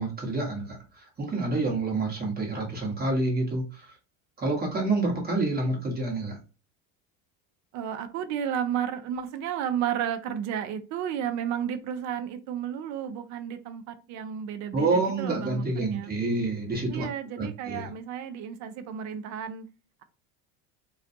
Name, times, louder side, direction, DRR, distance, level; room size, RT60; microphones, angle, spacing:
voice 1, 0.0-3.9 4.4-6.4 14.7-17.0 17.4-17.9, right 2 dB, 25° right, 1.1 m, -28 dB
voice 2, 7.7-16.1 16.9-19.7, right 9 dB, 45° right, 0.5 m, -32 dB
2.4 x 2.2 x 2.6 m
supercardioid pair, 105°, 41 cm